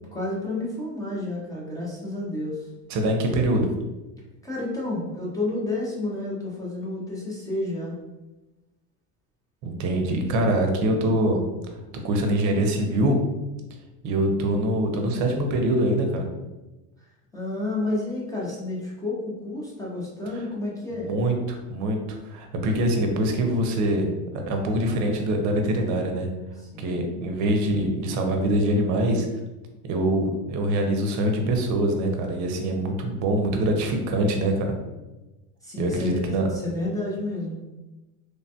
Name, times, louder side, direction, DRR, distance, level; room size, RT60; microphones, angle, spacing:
voice 1, 0.1-2.7 4.4-8.0 17.0-17.1 17.3-21.1 26.7-27.2 35.6-37.6, left 2 dB, 10° left, -5 dB, 0.3 m, -30 dB
voice 2, 2.9-3.7 9.6-11.4 12.0-13.2 14.0-16.3 21.1-22.0 22.2-24.1 24.3-26.3 26.8-29.3 29.8-34.7 35.8-36.5, right 1 dB, 45° right, 3 dB, 0.6 m, -24 dB
3.2 x 2.1 x 2.7 m, 1.1 s
cardioid pair, 140°, 41 cm